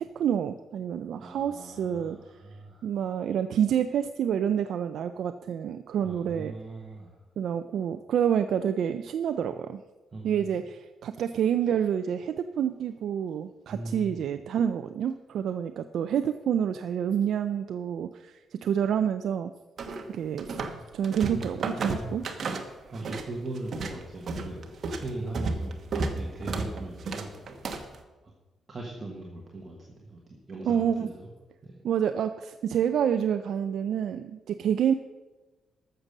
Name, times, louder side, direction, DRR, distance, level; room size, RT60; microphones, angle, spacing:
voice 1, 0.0-2.2 2.8-6.5 7.4-9.8 10.2-19.5 20.1-20.6 20.9-22.3 30.7-31.1 31.8-34.9, right 8 dB, 60° right, 9 dB, 0.4 m, -28 dB
voice 2, 1.2-2.9 6.0-7.2 10.1-10.6 13.7-14.2 22.9-24.7 25.0-27.7 28.0-28.3 28.7-31.3 31.6-31.8, right 2 dB, 25° right, -2 dB, 1.5 m, -40 dB
sound 1, 19.8-20.8 21.0-23.3 23.6-28.0, right 3 dB, 40° right, 1.2 m, -32 dB
13.5 x 6.8 x 6.6 m, 1.2 s
cardioid pair, 175°, 0 cm